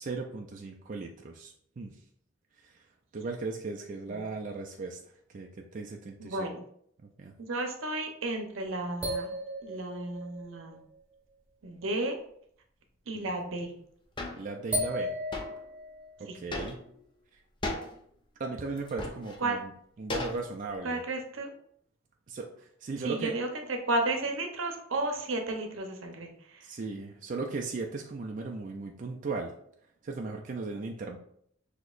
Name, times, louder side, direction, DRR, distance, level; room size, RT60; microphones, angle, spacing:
voice 1, 0.0-2.0 2.6-2.8 3.1-5.0 5.3-6.5 7.0-7.3 13.1-13.3 14.3-15.1 16.2-16.8 18.4-19.7 20.0-21.0 22.3-23.3 26.6-29.5 30.0-31.2, right 3 dB, 40° right, 1 dB, 0.4 m, -37 dB
voice 2, 6.2-6.6 7.4-9.3 9.6-10.8 11.6-12.2 13.1-13.7 16.3-16.4 19.4-19.6 20.8-21.5 23.0-26.6, right 2 dB, 75° right, 4 dB, 0.7 m, -33 dB
sound 1, 9.0-11.0 13.4-13.5 14.7-16.1, equal, 5° right, 1.3 m, -35 dB
sound 2, 14.2-14.4 15.3-15.6 16.5-17.0 17.6-17.9 18.8-19.4 20.1-20.7, left 2 dB, 25° left, 0.6 m, -36 dB
6.1 x 2.9 x 2.4 m, 0.66 s
head